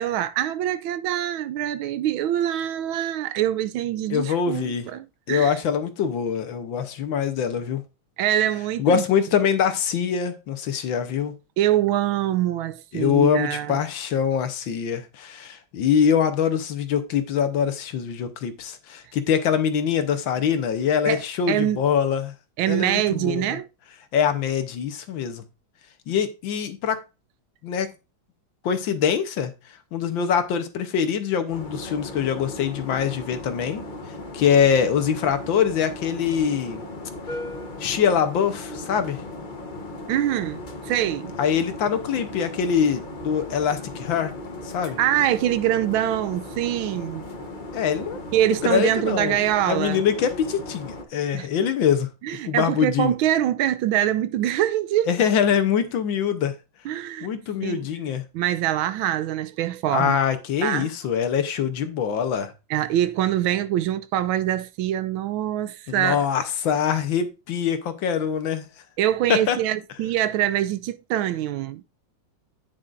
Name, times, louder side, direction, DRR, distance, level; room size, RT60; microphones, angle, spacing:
voice 1, 0.0-5.6 8.2-9.0 11.6-13.8 21.0-21.8 22.6-23.7 40.1-41.3 45.0-47.2 48.3-50.0 51.3-51.5 52.2-55.1 56.8-57.3 57.6-57.9 58.3-60.2 60.6-60.9 62.7-66.3 69.0-71.8, right 12 dB, 80° right, 1.4 m, -24 dB
voice 2, 4.1-4.9 5.3-7.8 8.8-11.3 12.9-22.3 22.7-23.5 24.1-25.4 26.1-27.0 27.6-27.9 28.6-29.5 29.9-33.8 34.3-36.8 37.8-39.2 41.4-44.3 44.6-45.0 47.7-48.2 48.6-49.4 49.7-52.1 52.5-53.1 55.1-56.5 57.2-58.2 59.9-62.5 65.9-68.6 69.3-69.6, left 7 dB, 70° left, 1.6 m, -23 dB
sound 1, 31.5-51.0, left 2 dB, 35° left, 0.9 m, -37 dB
9.5 x 7.6 x 2.5 m
omnidirectional pair, 2.3 m